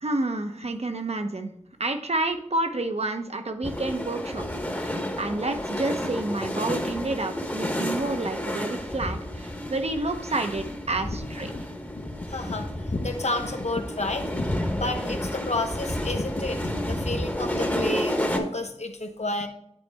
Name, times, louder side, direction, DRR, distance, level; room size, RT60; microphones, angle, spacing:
voice 1, 0.0-1.5 1.8-4.5 4.7-11.5, right 2 dB, 60° right, 6 dB, 0.8 m, -29 dB
sound 1, 3.6-18.4, equal, 15° left, 1.0 m, -31 dB
voice 2, 11.4-19.5, left 2 dB, 65° left, 5 dB, 1.0 m, -31 dB
9.4 x 4.2 x 3.4 m, 0.74 s
wide cardioid pair, 50°, 12 cm